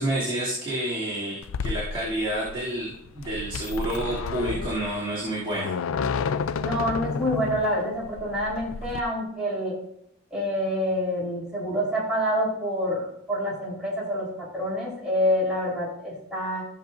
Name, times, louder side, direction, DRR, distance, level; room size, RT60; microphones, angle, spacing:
voice 1, 0.0-5.7, right 1 dB, 25° right, -8 dB, 2.6 m, -29 dB
sound 1, 1.4-9.0, left 5 dB, 90° left, 0.4 m, -31 dB
voice 2, 6.6-9.7 10.3-16.6, equal, 5° right, -7 dB, 3.8 m, -27 dB
15.5 x 6.8 x 2.6 m, 0.73 s
head